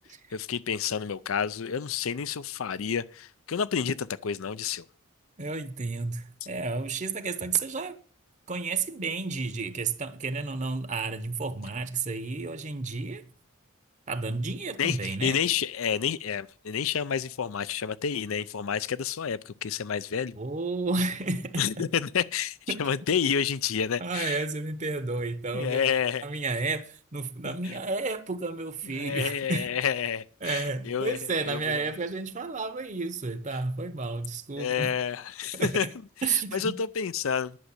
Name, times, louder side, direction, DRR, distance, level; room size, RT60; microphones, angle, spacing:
voice 1, 0.3-4.8 14.8-20.3 21.6-24.4 25.5-26.2 27.4-27.7 29.0-31.2 31.4-31.8 34.6-35.9 36.3-37.6, left 7 dB, 70° left, 0.5 m, -29 dB
voice 2, 5.4-8.0 8.5-13.3 14.1-15.4 20.4-21.6 22.7-22.9 24.0-25.8 26.2-29.7 30.4-34.9 35.5-35.9 36.2-36.8, right 3 dB, 35° right, 0.8 m, -31 dB
11.0 x 6.4 x 8.2 m
head